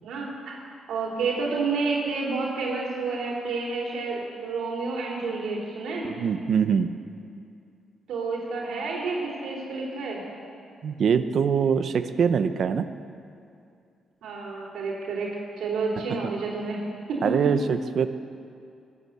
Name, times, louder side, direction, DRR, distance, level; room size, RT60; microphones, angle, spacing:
voice 1, 0.0-0.6 0.9-6.1 8.1-10.2 14.2-17.5, right 3 dB, 85° right, -3 dB, 3.3 m, -30 dB
voice 2, 6.0-6.9 10.8-12.9 17.2-18.1, right 7 dB, 50° right, 10 dB, 0.7 m, -23 dB
20.5 x 8.4 x 8.0 m, 2.4 s
cardioid pair, 165°, 0 cm